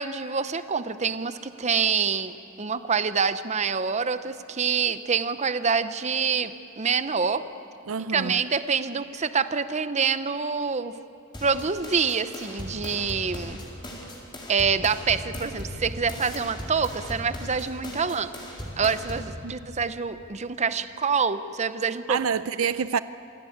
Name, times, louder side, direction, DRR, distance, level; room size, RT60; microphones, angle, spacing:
voice 1, 0.0-2.3 2.6-7.4 8.1-10.9 11.4-13.6 14.5-18.3 18.8-22.2, right 5 dB, 35° right, 12 dB, 0.7 m, -26 dB
voice 2, 7.9-8.4 19.4-19.5 22.1-23.0, right 6 dB, 75° right, 14 dB, 0.5 m, -27 dB
sound 1, 11.3-19.3, equal, 25° left, 4.2 m, -37 dB
27.0 x 17.5 x 8.7 m, 2.6 s
head